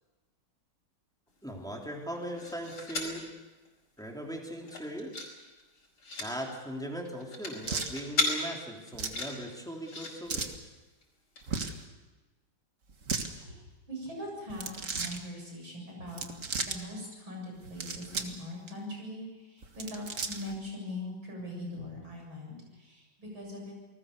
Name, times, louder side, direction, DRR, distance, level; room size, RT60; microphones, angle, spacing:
voice 1, 1.4-3.3 4.0-5.2 6.2-10.5, equal, ahead, 0 dB, 3.4 m, -39 dB
sound 1, 2.1-3.2 3.7-3.8 4.0-4.3 4.6-5.3 5.6-6.3 7.1-8.3 8.9-10.1 11.0-11.1 11.4-11.5, left 3 dB, 85° left, 5.9 m, -35 dB
sound 2, 7.7-7.9 8.9-9.2 10.3-10.6 11.4-11.8 12.9-13.3 14.5-15.2 16.1-16.8 17.6-18.4 18.7-18.8 19.6-20.6, right 4 dB, 40° right, 1.8 m, -35 dB
voice 2, 13.3-16.3 16.5-23.7, left 1 dB, 65° right, 0 dB, 8.3 m, -41 dB
28.5 x 20.0 x 6.8 m, 1.2 s
omnidirectional pair, 2.3 m